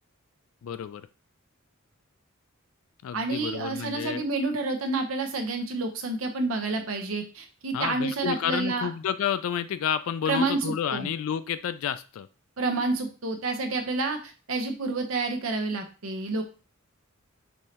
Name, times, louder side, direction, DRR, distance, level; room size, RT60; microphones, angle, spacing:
voice 1, 0.6-1.0 3.0-4.2 7.7-12.3, left 8 dB, 70° left, 12 dB, 0.3 m, -30 dB
voice 2, 3.1-8.9 10.3-11.1 12.6-16.4, right 3 dB, 70° right, 5 dB, 0.8 m, -29 dB
5.4 x 3.2 x 2.8 m, 0.35 s
head